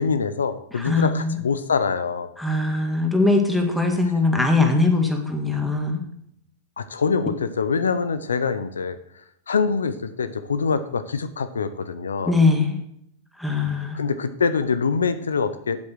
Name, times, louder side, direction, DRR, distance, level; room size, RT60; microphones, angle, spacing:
voice 1, 0.0-2.3 6.8-9.0 9.5-12.4 13.9-15.8, left 5 dB, 90° left, 12 dB, 0.7 m, -24 dB
voice 2, 0.7-1.4 2.4-6.0 12.3-12.8 13.4-14.0, left 3 dB, ahead, 3 dB, 1.9 m, -21 dB
7.6 x 7.6 x 6.3 m, 0.75 s
hypercardioid pair, 110°, 0 cm